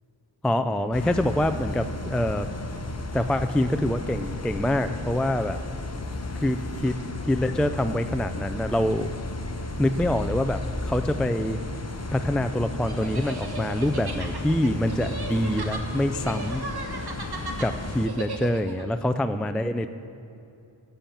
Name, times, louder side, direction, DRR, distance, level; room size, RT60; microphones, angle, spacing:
voice 1, 0.4-2.5 3.1-5.6 6.4-7.0 7.3-9.1 9.8-11.6 12.1-16.6 17.6-19.9, left 1 dB, ahead, 9 dB, 0.3 m, -25 dB
sound 1, 0.9-18.1, left 2 dB, 30° left, 0.9 m, -34 dB
sound 2, 12.8-18.8, right 2 dB, 50° right, 1.2 m, -37 dB
11.5 x 7.1 x 7.2 m, 2.7 s
wide cardioid pair, 45°, 48 cm